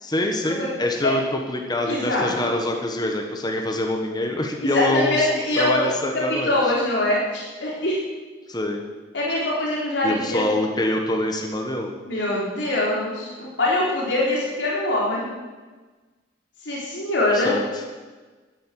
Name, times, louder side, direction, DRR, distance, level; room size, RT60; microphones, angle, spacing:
voice 1, 0.0-5.3 5.6-6.7 8.5-8.8 10.0-11.9 17.3-17.6, left 1 dB, 20° left, 2 dB, 1.4 m, -25 dB
voice 2, 1.9-2.5 4.6-5.9 6.4-8.0 9.1-10.4 12.1-15.3 16.6-17.5, left 1 dB, 70° left, -5 dB, 3.8 m, -23 dB
13.0 x 10.5 x 7.5 m, 1.3 s
head